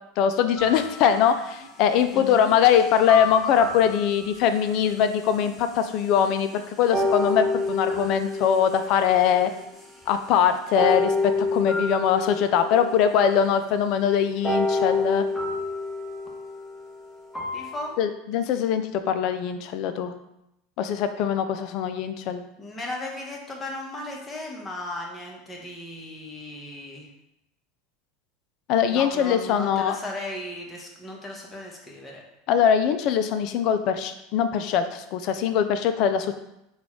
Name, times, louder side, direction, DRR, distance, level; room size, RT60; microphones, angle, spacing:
voice 1, 0.2-9.5 10.1-15.2 18.0-20.1 20.8-22.4 28.7-30.0 32.5-36.3, left 8 dB, 55° left, 9 dB, 0.4 m, -22 dB
sound 1, 0.6-1.7 3.1-4.8 5.4-5.5 6.9-9.8 10.7-13.4 14.4-17.9, left 2 dB, ahead, 1.0 m, -28 dB
voice 2, 2.1-2.5 17.5-17.9 22.6-27.1 28.9-32.2, left 1 dB, 20° left, -1 dB, 1.1 m, -36 dB
4.0 x 2.4 x 4.4 m, 0.85 s
hypercardioid pair, 90°, 0 cm